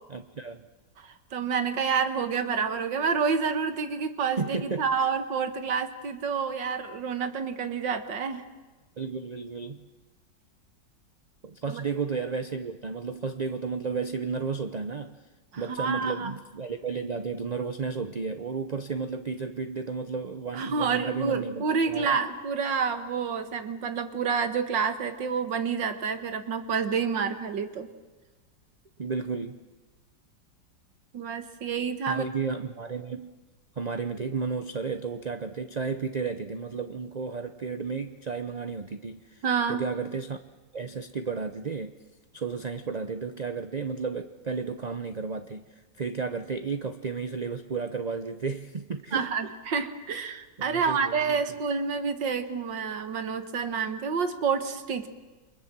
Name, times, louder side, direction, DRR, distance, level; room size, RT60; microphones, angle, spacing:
voice 1, 0.1-0.7 4.4-5.1 9.0-9.8 11.4-15.2 15.6-22.1 29.0-29.6 32.1-33.3 33.8-39.4 39.7-40.4 40.7-42.0 42.3-49.3 50.6-51.4, right 5 dB, 40° right, 9 dB, 0.6 m, -33 dB
voice 2, 1.0-8.5 11.7-11.8 15.5-16.3 20.5-27.9 31.1-32.2 39.4-39.8 49.1-55.1, right 6 dB, 90° right, 9 dB, 2.2 m, -28 dB
29.5 x 23.0 x 7.5 m, 1.2 s
omnidirectional pair, 1.9 m